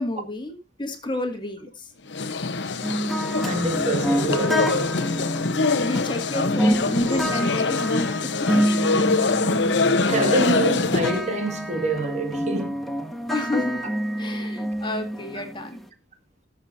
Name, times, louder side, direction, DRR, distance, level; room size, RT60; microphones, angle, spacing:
voice 1, 0.0-1.9 5.8-8.9 13.3-13.9 14.2-15.8, left 2 dB, 25° left, 2.1 m, -30 dB
sound 1, 2.1-11.3, left 3 dB, 80° left, 1.0 m, -24 dB
sound 2, 2.8-15.8, equal, ahead, 1.4 m, -28 dB
voice 2, 3.4-5.0 10.0-12.8, right 2 dB, 40° right, 2.0 m, -26 dB
20.0 x 7.0 x 2.7 m
head